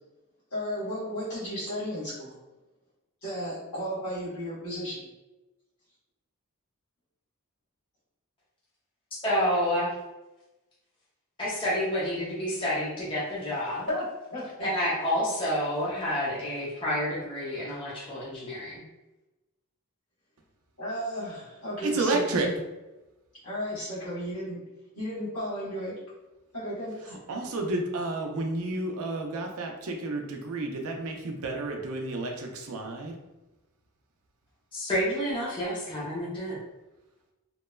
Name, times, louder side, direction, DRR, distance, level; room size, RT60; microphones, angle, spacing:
voice 1, 0.5-2.3 3.2-5.1 13.9-14.7 20.8-22.6 23.4-24.6 24.9-25.9 26.5-27.1, equal, 75° left, -10 dB, 1.2 m, -34 dB
voice 2, 9.2-9.9 11.4-13.9 14.6-18.8 34.7-36.6, equal, 25° left, -7 dB, 0.6 m, -29 dB
voice 3, 21.8-22.5 27.1-33.1, right 2 dB, 70° right, 2 dB, 0.5 m, -31 dB
2.9 x 2.1 x 2.2 m, 1.0 s
head